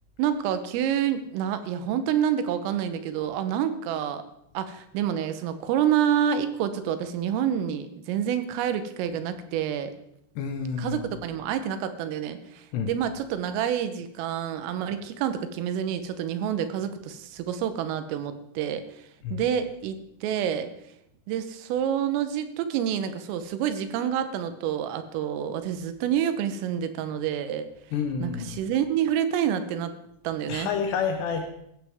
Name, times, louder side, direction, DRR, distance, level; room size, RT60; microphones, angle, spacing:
voice 1, 0.2-4.2 4.6-9.9 10.8-18.8 19.3-20.7 21.3-27.7 28.2-29.9 30.3-30.7, right 9 dB, 85° right, 10 dB, 3.7 m, -28 dB
voice 2, 10.4-11.0 12.7-12.9 19.2-19.4 27.9-28.5 30.5-31.5, left 6 dB, 75° left, 5 dB, 2.6 m, -29 dB
16.0 x 14.5 x 3.6 m, 0.75 s
omnidirectional pair, 5.7 m